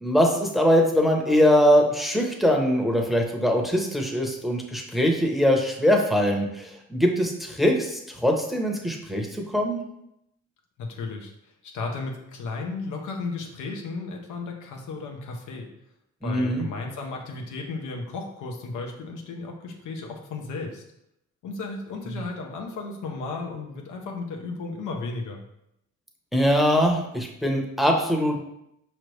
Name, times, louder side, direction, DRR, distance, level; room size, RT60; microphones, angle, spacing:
voice 1, 0.0-9.8 16.2-16.7 26.3-28.4, equal, ahead, 0 dB, 0.8 m, -22 dB
voice 2, 10.8-11.3 11.7-15.7 16.2-20.8 21.4-25.4, left 3 dB, 90° left, 1 dB, 0.8 m, -34 dB
5.0 x 3.1 x 3.2 m, 0.81 s
cardioid pair, 90°, 30 cm